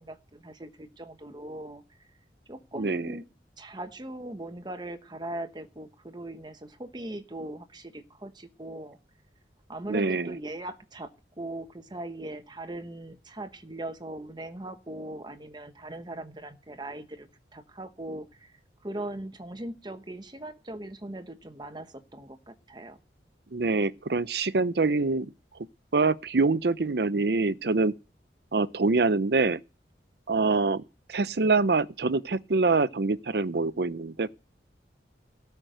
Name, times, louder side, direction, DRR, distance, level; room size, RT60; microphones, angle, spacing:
voice 1, 0.0-1.8 2.5-3.2 3.6-9.0 9.7-18.6 18.8-23.0, right 1 dB, 25° right, 1.0 m, -40 dB
voice 2, 2.8-3.1 9.9-10.4 23.5-25.3 25.9-27.9 28.5-29.6 30.3-30.8 31.1-34.3, right 3 dB, 65° right, 0.6 m, -25 dB
18.0 x 6.0 x 7.9 m
head